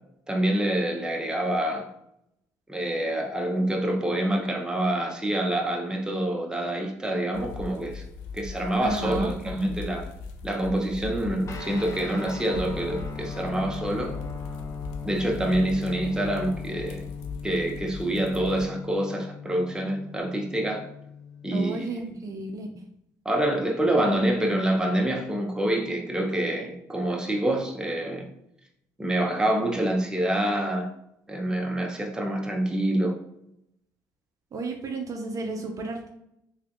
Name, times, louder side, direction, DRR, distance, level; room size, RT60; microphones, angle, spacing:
voice 1, 0.3-1.9 2.7-8.0 8.3-10.1 10.4-14.2 15.0-17.1 17.4-20.9 21.4-21.9 23.2-28.3 29.0-30.9 31.3-33.2, right 1 dB, 10° right, 0.8 m, -26 dB
sound 1, 7.3-18.7, left 4 dB, 90° left, 0.4 m, -39 dB
voice 2, 8.8-9.3 21.5-22.7 34.5-36.1, right 3 dB, 45° right, 0.5 m, -32 dB
sound 2, 11.4-21.8, left 5 dB, 40° left, 0.7 m, -39 dB
3.4 x 3.2 x 2.5 m
supercardioid pair, 70°, 8 cm